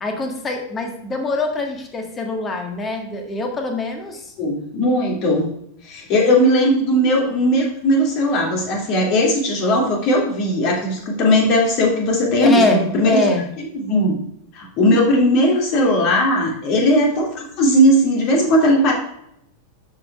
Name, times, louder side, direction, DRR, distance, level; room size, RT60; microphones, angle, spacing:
voice 1, 0.0-4.3 12.4-13.4, left 3 dB, 20° left, 3 dB, 1.6 m, -23 dB
voice 2, 4.4-5.5 5.8-13.2 13.7-14.1 14.5-18.9, equal, 40° left, -1 dB, 2.5 m, -17 dB
12.5 x 5.5 x 2.4 m, 0.74 s
figure-of-eight pair, 90°, 0 cm